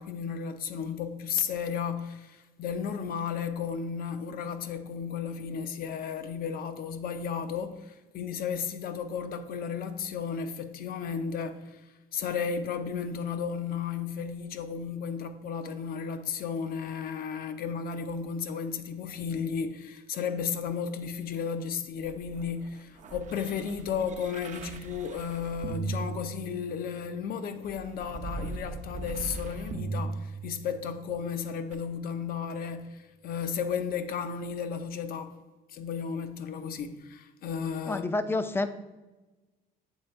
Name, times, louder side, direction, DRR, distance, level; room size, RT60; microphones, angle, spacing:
voice 1, 0.0-35.3 35.7-38.1, left 6 dB, 60° left, 0.6 m, -34 dB
sound 1, 22.0-26.9 27.6-31.0 31.7-31.8, right 4 dB, 45° right, 0.6 m, -38 dB
voice 2, 37.8-38.7, left 2 dB, 15° left, 0.4 m, -28 dB
7.2 x 3.3 x 4.4 m
cardioid pair, 110°, 17 cm